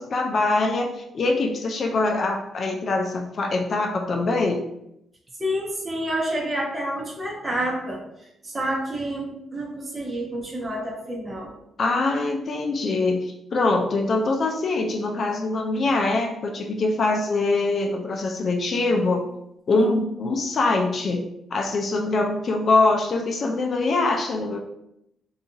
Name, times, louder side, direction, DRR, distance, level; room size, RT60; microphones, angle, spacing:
voice 1, 0.0-4.6 11.8-19.3 19.7-24.6, left 3 dB, 55° left, 2 dB, 0.3 m, -23 dB
voice 2, 5.4-8.0 8.4-11.5, right 1 dB, 30° right, -4 dB, 0.8 m, -28 dB
2.5 x 2.4 x 2.7 m, 0.81 s
cardioid pair, 70°, 0 cm